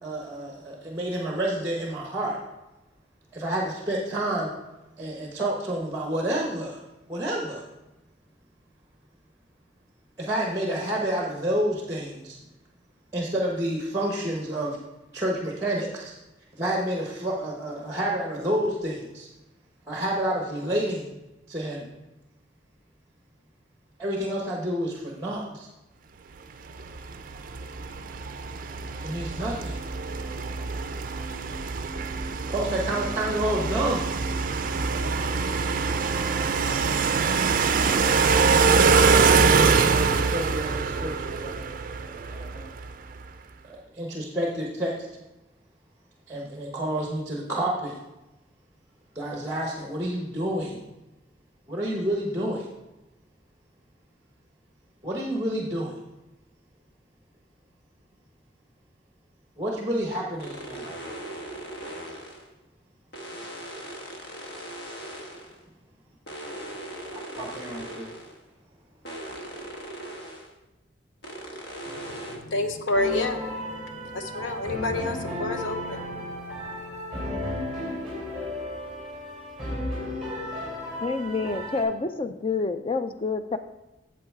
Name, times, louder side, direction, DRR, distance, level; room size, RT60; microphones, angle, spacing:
voice 1, 0.0-2.4 3.3-4.5 5.0-6.8 7.1-7.6 10.2-12.4 13.1-14.8 15.1-16.2 16.5-19.3 19.9-21.1 21.5-21.9 24.0-25.7 29.0-29.8 32.5-34.1 39.2-42.6 43.6-45.1 46.3-48.0 49.1-50.9 51.7-52.7 55.0-56.0 59.6-61.0 67.1-68.1, right 1 dB, 15° right, -1 dB, 0.9 m, -29 dB
sound 1, 26.8-42.9, right 5 dB, 45° right, 0.4 m, -24 dB
sound 2, 60.4-62.5 63.1-65.6 66.3-68.4 69.0-70.5 71.2-72.4, right 1 dB, 60° left, 1.3 m, -39 dB
voice 2, 71.9-76.3, left 2 dB, 90° left, 7 dB, 0.8 m, -30 dB
sound 3, 72.9-81.8, left 1 dB, 5° left, 3.3 m, -34 dB
voice 3, 81.0-83.6, left 4 dB, 30° left, 10 dB, 0.4 m, -28 dB
8.7 x 7.2 x 3.6 m, 1.0 s
head